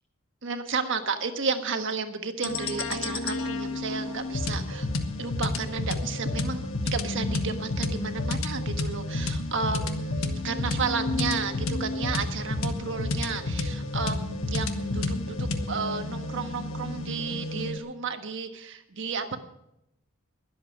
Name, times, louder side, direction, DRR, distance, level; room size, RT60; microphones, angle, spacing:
voice 1, 0.4-4.9 5.2-19.4, right 5 dB, 60° right, 7 dB, 1.4 m, -32 dB
sound 1, 2.4-17.8, left 2 dB, 70° left, 1.3 m, -30 dB
21.5 x 8.0 x 5.2 m, 0.82 s
head